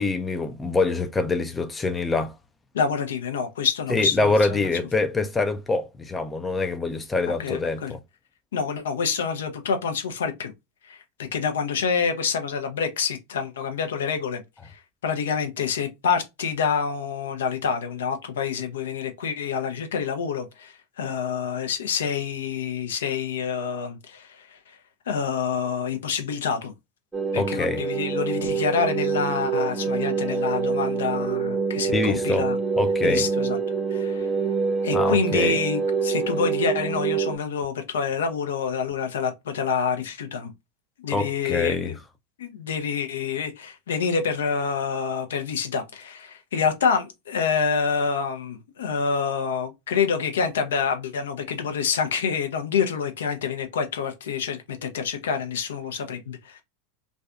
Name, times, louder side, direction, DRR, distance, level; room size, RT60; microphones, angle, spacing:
voice 1, 0.0-2.3 3.9-8.0 27.4-27.8 31.9-32.5 32.8-33.2 34.9-35.6 41.1-41.9, left 3 dB, 15° left, 0.3 m, -25 dB
voice 2, 2.7-4.3 7.4-7.9 8.5-10.5 10.9-24.8 25.1-26.7 27.3-32.6 33.0-33.6 33.9-34.3 34.8-40.5 41.0-41.9 42.4-56.6, left 6 dB, 75° left, 0.6 m, -27 dB
sound 1, 27.1-37.4, right 5 dB, 10° right, 0.7 m, -26 dB
2.5 x 2.3 x 2.3 m
hypercardioid pair, 90°, 0 cm